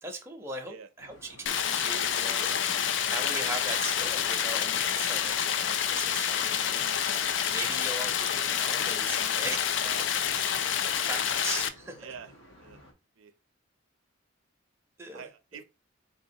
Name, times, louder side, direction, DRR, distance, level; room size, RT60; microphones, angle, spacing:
voice 1, 0.0-2.6 3.1-9.9 11.0-12.1 15.0-15.3, right 2 dB, 15° right, 0.6 m, -39 dB
sound 1, 1.0-12.9, left 1 dB, 85° left, 1.1 m, -54 dB
Stream, 1.5-11.7, left 8 dB, 65° left, 0.3 m, -28 dB
voice 2, 2.2-2.6 9.8-10.6 12.0-12.3 12.6-12.8 13.2-13.3 15.1-15.6, right 6 dB, 90° right, 0.5 m, -46 dB
3.8 x 2.9 x 2.7 m
head